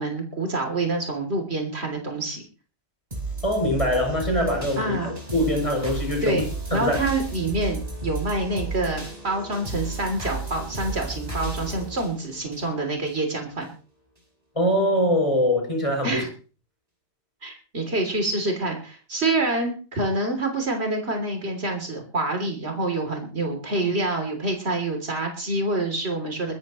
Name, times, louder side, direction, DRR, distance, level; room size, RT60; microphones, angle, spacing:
voice 1, 0.0-2.4 4.8-5.1 6.2-13.7 16.0-16.3 17.4-26.5, right 2 dB, 70° right, 3 dB, 3.6 m, -27 dB
sound 1, 3.1-13.1 13.6-13.7, right 2 dB, 35° right, 5.3 m, -33 dB
voice 2, 3.4-6.4 6.7-7.0 14.6-16.2, left 1 dB, 30° left, 1 dB, 7.4 m, -23 dB
22.5 x 13.5 x 3.1 m, 0.37 s
omnidirectional pair, 1.1 m